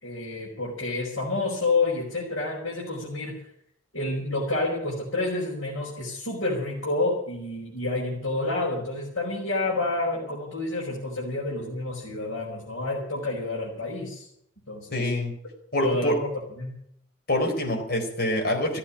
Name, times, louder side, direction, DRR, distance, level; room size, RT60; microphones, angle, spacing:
voice 1, 0.0-3.4 3.9-14.3 14.7-15.0 15.8-16.3 16.6-16.7, left 2 dB, 75° left, -6 dB, 5.4 m, -29 dB
voice 2, 14.9-15.3 15.7-16.1 17.3-18.8, left 1 dB, 50° left, 2 dB, 4.3 m, -25 dB
15.0 x 8.4 x 10.0 m, 0.70 s
head